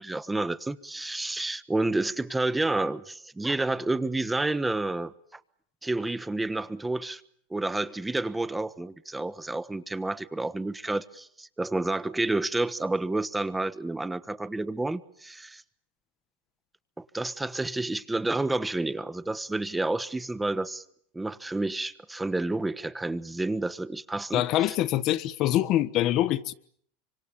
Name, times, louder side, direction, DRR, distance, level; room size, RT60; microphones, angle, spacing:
voice 1, 0.0-5.4 5.8-7.2 7.5-15.6 17.0-20.8 21.1-24.7, right 2 dB, 10° right, 1.3 m, -30 dB
voice 2, 24.3-26.5, left 13 dB, 50° left, 1.3 m, -24 dB
25.5 x 25.5 x 8.6 m
hypercardioid pair, 100°, 0 cm